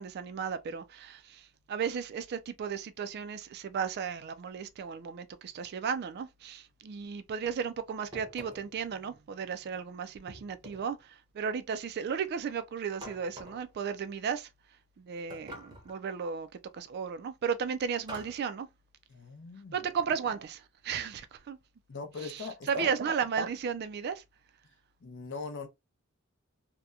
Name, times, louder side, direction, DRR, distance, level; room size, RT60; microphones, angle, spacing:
voice 1, 0.0-1.4 1.7-11.0 11.3-14.5 15.0-16.5 16.7-18.7 19.7-21.6 22.7-24.2, right 6 dB, 50° right, 0.3 m, -34 dB
sound 1, 8.1-8.8 10.3-11.0 13.0-13.7 15.3-16.0 18.1-18.5, equal, 20° right, 0.7 m, -47 dB
voice 2, 19.1-19.9 21.9-22.9 25.0-25.7, left 4 dB, 55° left, 0.6 m, -40 dB
2.8 x 2.1 x 2.3 m
head